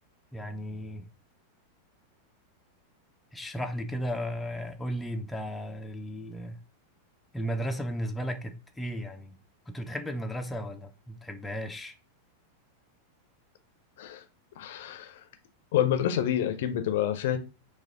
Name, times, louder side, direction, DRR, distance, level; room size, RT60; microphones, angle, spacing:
voice 1, 0.3-1.1 3.3-6.6 7.3-9.4 9.7-12.0, equal, 5° left, 0.5 m, -35 dB
voice 2, 14.6-15.2 15.7-17.4, left 10 dB, 55° left, 0.6 m, -28 dB
4.6 x 2.3 x 3.5 m
figure-of-eight pair, 90°, 0 cm